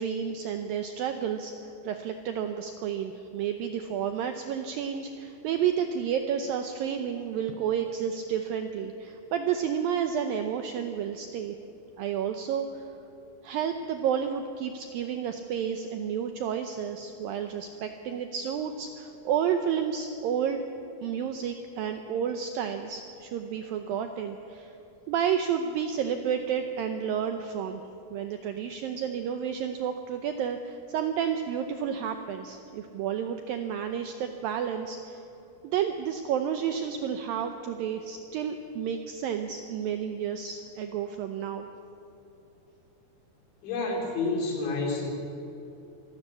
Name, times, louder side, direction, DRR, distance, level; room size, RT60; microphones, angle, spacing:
voice 1, 0.0-11.6 12.0-12.9 13.4-20.6 21.0-24.7 25.1-27.8 28.1-35.2 35.6-41.7, right 8 dB, 80° right, 7 dB, 2.0 m, -31 dB
voice 2, 43.6-45.1, left 3 dB, 90° left, 0 dB, 5.6 m, -29 dB
25.0 x 12.5 x 8.4 m, 2.9 s
omnidirectional pair, 5.1 m